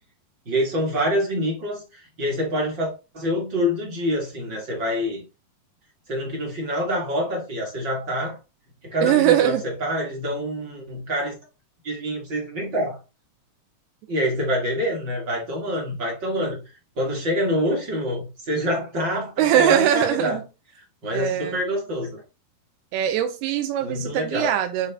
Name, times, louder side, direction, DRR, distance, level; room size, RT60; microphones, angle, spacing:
voice 1, 0.4-5.2 6.1-8.4 8.9-9.5 9.8-11.3 11.8-13.0 14.1-16.6 17.0-20.4 21.0-22.2 23.8-24.5, equal, 45° right, -1 dB, 1.5 m, -26 dB
voice 2, 9.0-9.6 19.4-20.4 21.1-21.6 22.9-24.9, right 11 dB, 85° right, 7 dB, 2.7 m, -21 dB
9.5 x 3.4 x 3.4 m, 0.29 s
omnidirectional pair, 4.6 m